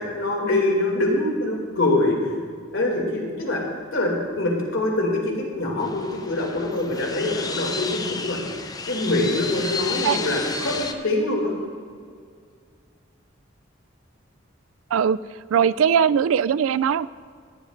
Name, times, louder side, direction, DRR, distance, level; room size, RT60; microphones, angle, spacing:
voice 1, 0.0-2.2 2.7-3.6 3.9-8.4 8.9-11.5, left 2 dB, 80° left, -1 dB, 2.7 m, -24 dB
sound 1, 5.8-10.9, left 4 dB, 20° left, 0.6 m, -32 dB
voice 2, 15.5-17.1, right 7 dB, 90° right, 18 dB, 0.3 m, -20 dB
17.5 x 11.0 x 2.6 m, 2.1 s
head